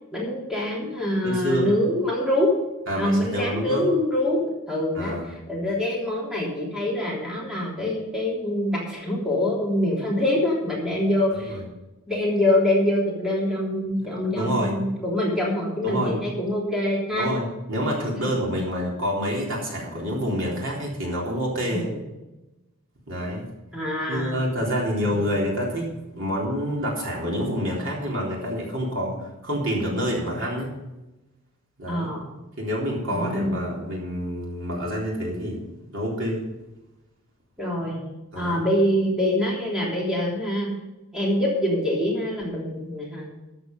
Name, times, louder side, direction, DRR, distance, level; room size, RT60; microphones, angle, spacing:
voice 1, 0.1-2.5 2.9-4.4 4.7-11.6 12.1-17.3 21.7-22.0 23.7-24.3 25.1-25.3 31.8-32.3 33.1-33.6 37.6-38.0 38.3-40.7 41.1-43.3, left 1 dB, 5° right, -5 dB, 3.3 m, -25 dB
voice 2, 1.2-1.7 2.9-3.8 4.9-5.3 11.5-11.6 14.2-14.8 15.8-16.2 17.2-21.9 23.1-23.5 24.1-30.7 31.8-32.1 32.6-35.6 35.9-36.5 38.3-38.6, equal, 55° right, -3 dB, 3.8 m, -27 dB
13.5 x 8.1 x 5.4 m, 1.0 s
head